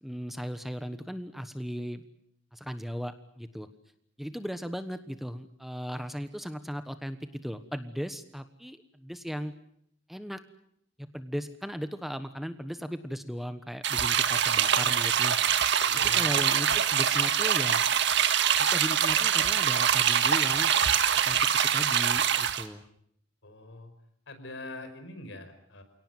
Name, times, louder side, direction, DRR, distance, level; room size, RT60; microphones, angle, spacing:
voice 1, 0.0-2.0 2.5-3.7 4.2-9.5 10.1-10.4 11.0-15.4 15.9-17.8 18.6-20.7 21.2-21.5 21.7-22.9, equal, ahead, 10 dB, 1.2 m, -37 dB
sound 1, 13.8-22.6, right 8 dB, 65° right, 1.8 m, -24 dB
voice 2, 15.9-16.4 23.4-23.9 24.3-25.8, left 2 dB, 70° left, 8 dB, 5.2 m, -43 dB
28.5 x 18.0 x 9.3 m, 0.71 s
head